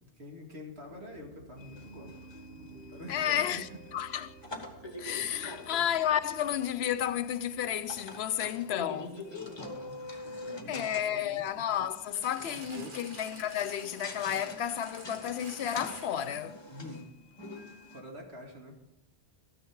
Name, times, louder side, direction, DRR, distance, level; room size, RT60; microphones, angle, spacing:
voice 1, 0.2-3.8 5.4-5.8 8.2-8.6 8.9-11.4 12.4-13.1 16.7-17.0 17.9-18.8, equal, 70° right, 2.2 m, -47 dB
Piano, 0.9-8.4, right 3 dB, 25° right, 2.2 m, -53 dB
sound 1, 1.6-18.0, left 2 dB, 25° left, 1.2 m, -46 dB
voice 2, 3.1-4.3 5.0-9.2 10.7-16.6, left 10 dB, 70° left, 0.8 m, -32 dB
sound 2, 12.1-16.6 17.3-17.4, right 2 dB, 50° right, 1.7 m, -49 dB
13.5 x 10.0 x 4.6 m
omnidirectional pair, 1.1 m